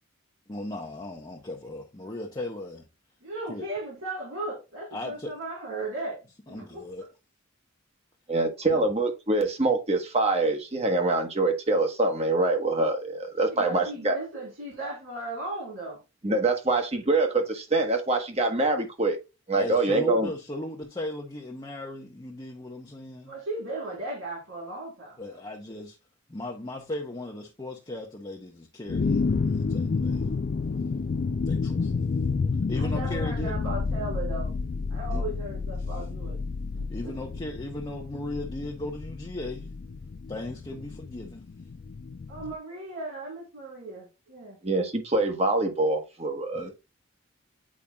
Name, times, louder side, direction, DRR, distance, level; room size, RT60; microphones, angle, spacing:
voice 1, 0.5-2.9 3.5-3.7 4.9-5.3 6.5-7.1 8.6-8.9 19.6-23.4 25.2-26.0 26.3-30.3 31.4-32.0 32.7-33.5 35.1-35.2 36.9-39.7 40.3-41.5 46.5-46.7, left 1 dB, 20° left, 0.8 m, -37 dB
voice 2, 3.2-6.2 6.5-6.8 13.5-16.0 23.3-25.4 32.8-34.5 34.9-36.4 36.7-37.1 42.3-44.6, right 2 dB, 90° right, 3.7 m, -36 dB
voice 3, 8.3-14.2 16.2-19.2 19.5-20.3 44.6-46.7, right 2 dB, 30° right, 1.1 m, -25 dB
sound 1, 28.9-42.5, left 4 dB, 40° left, 0.3 m, -30 dB
8.6 x 4.9 x 2.3 m
head